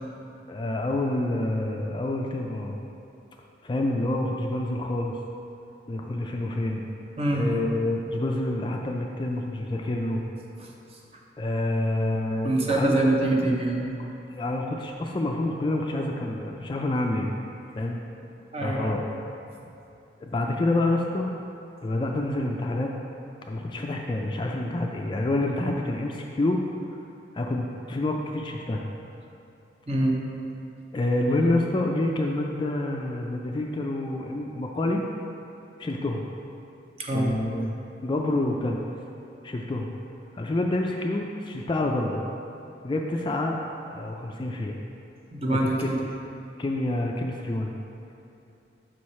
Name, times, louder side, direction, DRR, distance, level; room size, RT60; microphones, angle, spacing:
voice 1, 0.5-2.7 3.6-5.2 5.9-6.8 7.3-10.2 11.4-13.1 14.3-17.3 17.8-18.0 18.6-19.0 20.2-21.3 21.8-22.9 23.5-26.6 27.3-28.8 30.9-35.0 35.8-36.2 37.1-37.7 38.0-38.8 39.4-39.9 40.3-42.2 42.8-44.8 45.6-45.9 46.6-47.7, left 1 dB, 25° left, 1 dB, 0.3 m, -27 dB
voice 2, 7.2-7.5 10.6-10.7 12.4-13.9 18.5-19.0 29.9-30.2 37.0-37.3 45.3-46.0, right 1 dB, 35° right, -1 dB, 0.7 m, -24 dB
6.1 x 4.7 x 4.2 m, 2.8 s
head